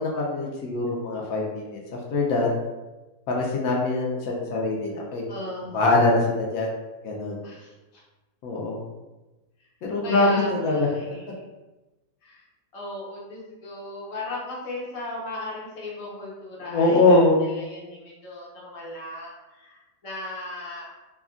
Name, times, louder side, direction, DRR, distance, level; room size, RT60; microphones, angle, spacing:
voice 1, 0.0-1.8 2.1-2.5 3.3-5.2 5.7-6.7 7.0-7.4 8.4-8.8 9.9-10.9 16.7-17.4, left 2 dB, 70° left, -2 dB, 1.0 m, -22 dB
voice 2, 5.3-5.8 7.4-7.7 10.0-11.3 12.2-12.4 12.7-20.9, left 1 dB, 40° left, -6 dB, 0.5 m, -36 dB
3.3 x 2.2 x 2.4 m, 1.1 s
omnidirectional pair, 1.6 m